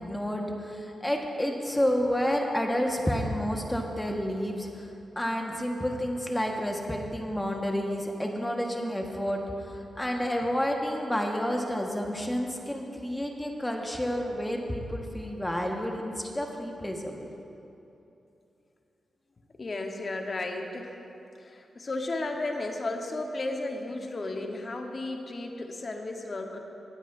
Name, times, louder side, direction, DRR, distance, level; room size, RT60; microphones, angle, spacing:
voice 1, 0.0-4.9 5.1-17.3, equal, 10° left, 1 dB, 1.5 m, -30 dB
voice 2, 19.6-20.9 21.4-26.6, left 2 dB, 50° left, 3 dB, 1.2 m, -34 dB
19.0 x 9.0 x 2.7 m, 2.9 s
supercardioid pair, 45°, 0 cm